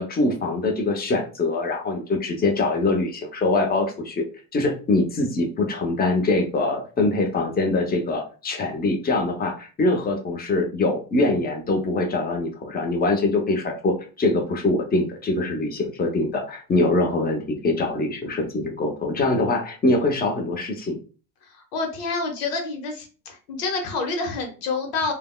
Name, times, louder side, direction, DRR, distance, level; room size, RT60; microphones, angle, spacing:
voice 1, 0.0-4.2 4.5-21.0, left 2 dB, 20° left, 3 dB, 0.8 m, -23 dB
voice 2, 21.5-25.1, left 3 dB, 85° left, 3 dB, 1.0 m, -28 dB
3.4 x 2.2 x 2.2 m, 0.36 s
hypercardioid pair, 80°, 46 cm